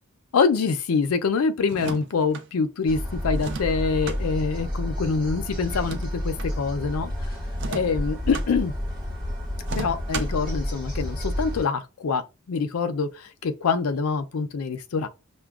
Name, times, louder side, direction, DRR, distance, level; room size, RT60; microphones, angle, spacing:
voice 1, 0.3-7.1 7.7-8.7 9.7-12.2 12.5-15.1, left 5 dB, 75° left, 0.4 m, -25 dB
sound 1, 1.6-2.5 3.4-4.2 5.7-6.5 7.5-8.5 9.6-10.5, right 4 dB, 55° right, 0.5 m, -35 dB
sound 2, 2.9-11.7, left 1 dB, 20° right, 1.4 m, -30 dB
5.8 x 2.2 x 2.3 m
head